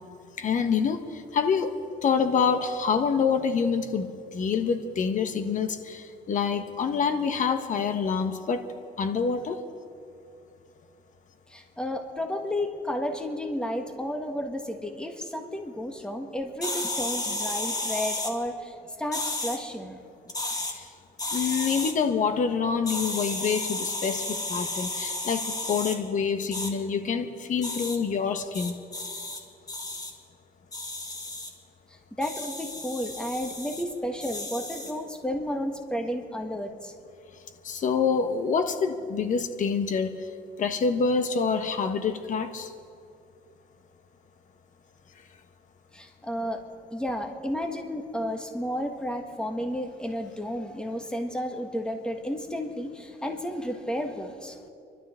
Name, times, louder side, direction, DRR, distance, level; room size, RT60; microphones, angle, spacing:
voice 1, 0.4-8.6 9.0-9.6 20.7-20.8 21.3-28.7 37.6-40.2 40.6-42.7, left 6 dB, 50° left, 9 dB, 1.2 m, -26 dB
voice 2, 11.5-20.0 31.9-36.9 45.9-46.6 46.9-54.6, equal, 5° left, 4 dB, 1.6 m, -32 dB
sound 1, 16.6-18.3 19.1-19.6 20.3-20.7 21.2-21.9 22.9-26.0 26.5-26.7 27.6-28.0 28.5-29.4 29.7-30.1 30.7-31.5 32.2-33.8 34.2-35.0, left 2 dB, 20° left, 1.7 m, -33 dB
27.5 x 12.0 x 3.7 m, 2.4 s
cardioid pair, 110°, 17 cm